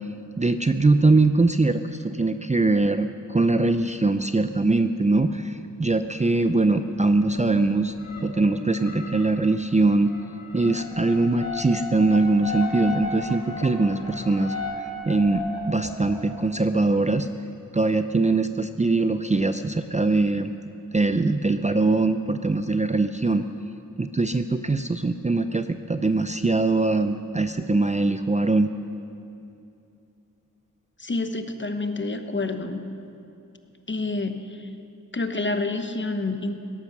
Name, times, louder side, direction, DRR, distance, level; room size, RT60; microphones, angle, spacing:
voice 1, 0.4-7.9 8.2-10.1 10.5-17.3 17.7-20.5 20.9-23.5 24.0-28.7, right 3 dB, 20° right, 9 dB, 0.5 m, -22 dB
sound 1, 6.3-6.4 7.0-7.6 7.9-16.5, left 2 dB, 50° left, 2.3 m, -36 dB
voice 2, 31.0-32.9 33.9-34.7 35.1-36.5, left 3 dB, 35° left, 7 dB, 1.1 m, -28 dB
17.0 x 13.5 x 6.0 m, 2.6 s
wide cardioid pair, 80°, 33 cm